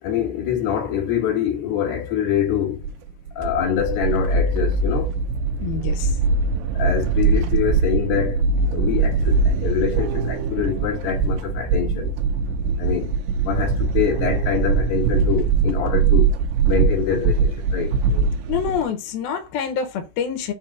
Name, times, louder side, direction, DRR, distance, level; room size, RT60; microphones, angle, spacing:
voice 1, 0.0-2.8 3.4-5.1 6.8-8.4 8.7-12.1 12.8-13.1 13.4-16.3 16.7-18.3, left 9 dB, 60° left, 3.6 m, -25 dB
sound 1, 2.8-18.8, right 4 dB, 85° right, 2.7 m, -21 dB
voice 2, 5.6-6.1 18.5-20.5, left 7 dB, 85° left, 2.1 m, -26 dB
7.6 x 2.8 x 5.9 m
omnidirectional pair, 6.0 m